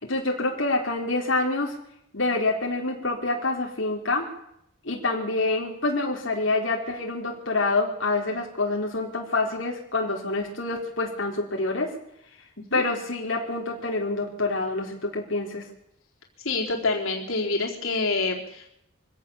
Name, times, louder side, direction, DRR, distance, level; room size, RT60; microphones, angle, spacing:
voice 1, 0.0-1.7 2.1-4.3 4.8-11.9 12.7-15.6, left 2 dB, 65° left, -1 dB, 3.9 m, -27 dB
voice 2, 16.4-18.8, left 3 dB, 85° left, 0 dB, 4.2 m, -27 dB
24.0 x 17.0 x 7.1 m, 0.75 s
head